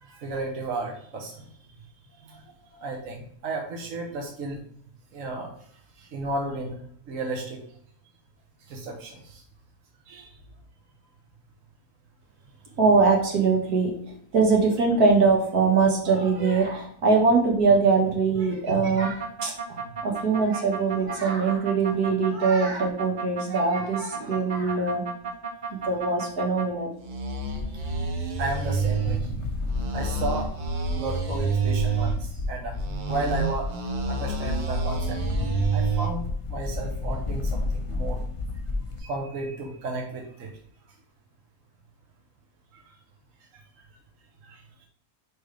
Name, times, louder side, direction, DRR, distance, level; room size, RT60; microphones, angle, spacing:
voice 1, 0.0-1.4 2.2-2.4 2.7-4.6 5.1-5.5 6.0-6.8 7.1-7.6 8.7-9.4 10.1-10.3 27.8-28.0 28.4-29.5 29.9-30.5 30.9-32.7 33.1-33.8 34.1-35.2 35.7-38.2 39.0-40.5 42.7-42.8 44.4-44.9, right 2 dB, 60° right, 0 dB, 1.4 m, -33 dB
voice 2, 12.8-13.9 14.3-25.0 25.7-26.9, right 4 dB, 75° right, 0 dB, 2.0 m, -22 dB
sound 1, 19.0-26.7 27.0-29.2 29.7-32.2 32.7-36.1, right 5 dB, 45° right, 0.7 m, -30 dB
sound 2, 27.4-39.0, left 3 dB, 30° left, 0.7 m, -32 dB
6.4 x 5.0 x 3.4 m, 0.64 s
omnidirectional pair, 1.6 m